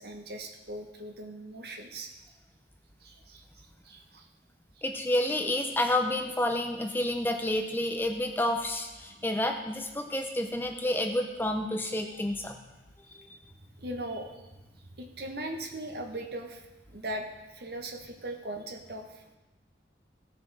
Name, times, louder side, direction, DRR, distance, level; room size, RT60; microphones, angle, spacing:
voice 1, 0.0-2.1 3.0-4.3 9.2-9.3 13.8-17.3 17.5-19.4, right 1 dB, 60° right, 3 dB, 1.2 m, -40 dB
voice 2, 4.8-12.6 13.1-13.3, left 1 dB, 10° left, 4 dB, 0.6 m, -29 dB
15.5 x 6.7 x 4.1 m, 1.1 s
head